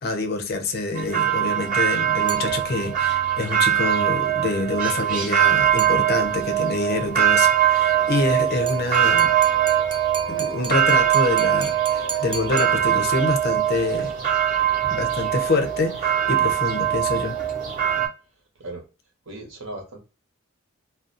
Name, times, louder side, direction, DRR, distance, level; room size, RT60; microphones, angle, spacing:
voice 1, 0.0-9.3 10.3-14.1 14.9-17.4, left 2 dB, 50° left, 0.5 m, -26 dB
sound 1, 1.0-18.1, right 10 dB, 40° right, 0.8 m, -22 dB
sound 2, 2.3-3.1 5.8-6.5 8.7-13.3, right 6 dB, 25° right, 0.4 m, -36 dB
voice 2, 19.3-20.0, right 2 dB, 75° right, 1.0 m, -36 dB
2.4 x 2.2 x 2.5 m
head